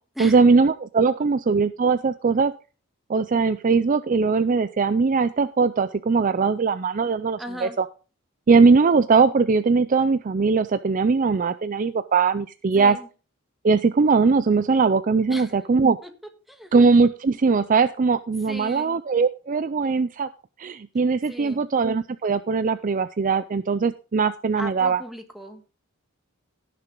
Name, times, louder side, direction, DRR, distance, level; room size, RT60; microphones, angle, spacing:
voice 1, 0.2-2.5 3.1-7.8 8.5-13.0 13.6-16.0 16.7-20.3 20.6-25.0, right 4 dB, 40° right, 12 dB, 0.4 m, -20 dB
voice 2, 7.4-7.8 12.7-13.1 15.3-15.5 16.0-16.1 16.5-16.7 18.5-19.0 21.3-21.6 24.5-25.8, equal, ahead, 5 dB, 1.6 m, -37 dB
17.0 x 6.8 x 3.8 m, 0.35 s
head